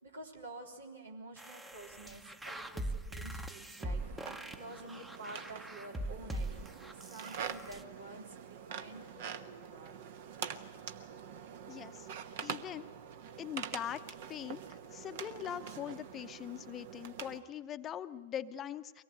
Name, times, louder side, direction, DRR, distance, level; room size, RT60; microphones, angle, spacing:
voice 1, 0.0-9.9, right 2 dB, 80° right, 0 dB, 3.6 m, -50 dB
sound 1, 1.4-7.8, right 1 dB, 10° right, 0.9 m, -42 dB
sound 2, 3.8-17.4, right 8 dB, 55° right, 1.1 m, -45 dB
voice 2, 11.7-12.1 12.4-12.9 13.4-14.0 14.3-14.6 14.9-19.0, left 10 dB, 25° left, 11 dB, 0.8 m, -42 dB
24.0 x 18.5 x 9.0 m, 1.3 s
figure-of-eight pair, 100°, 0 cm